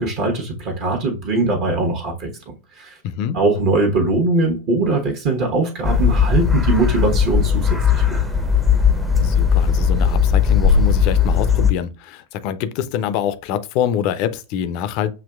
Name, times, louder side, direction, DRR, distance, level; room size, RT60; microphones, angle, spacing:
voice 1, 0.0-2.3 2.7-3.0 3.3-8.2, right 3 dB, 40° right, 1.1 m, -21 dB
voice 2, 3.0-3.4 9.2-15.1, left 9 dB, 45° left, 0.5 m, -25 dB
sound 1, 5.8-11.7, left 6 dB, 5° right, 0.7 m, -17 dB
7.1 x 2.9 x 2.3 m
figure-of-eight pair, 90°, 0 cm